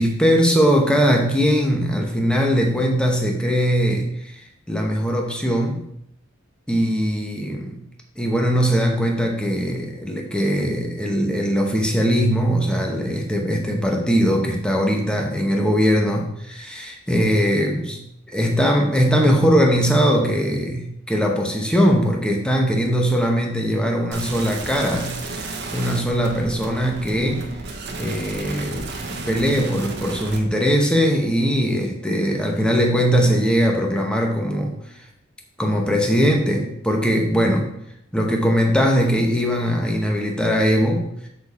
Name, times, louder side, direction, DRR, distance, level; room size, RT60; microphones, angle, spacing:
voice 1, 0.0-4.4 4.7-5.8 6.7-7.8 8.2-18.0 18.3-27.5 28.0-34.7 35.6-37.7 38.1-41.1, equal, 5° left, 0 dB, 0.8 m, -20 dB
sound 1, 24.1-30.4, right 3 dB, 55° right, 1.0 m, -33 dB
6.5 x 4.4 x 4.2 m, 0.76 s
head